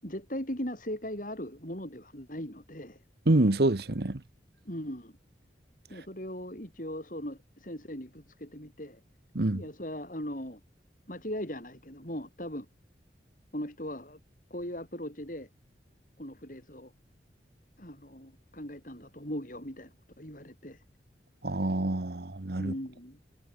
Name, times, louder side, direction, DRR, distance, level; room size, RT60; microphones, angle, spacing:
voice 1, 0.0-3.0 4.7-5.1 5.9-9.0 9.5-10.6 11.1-12.7 13.5-14.2 14.5-15.5 16.2-16.9 17.8-20.8 22.6-23.2, equal, 45° left, 7.2 m, -39 dB
voice 2, 3.3-4.2 9.3-9.6 21.4-22.7, right 2 dB, 60° right, 1.1 m, -26 dB
head